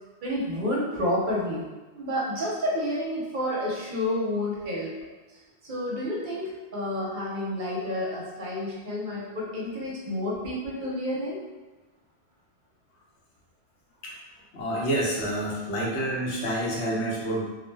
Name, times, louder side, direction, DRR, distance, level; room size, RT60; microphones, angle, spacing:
voice 1, 0.2-1.7 1.9-4.9 5.3-11.4, left 1 dB, 55° right, -5 dB, 0.7 m, -30 dB
voice 2, 14.5-17.5, right 1 dB, 85° left, -4 dB, 1.0 m, -28 dB
2.5 x 2.1 x 3.2 m, 1.2 s
omnidirectional pair, 1.1 m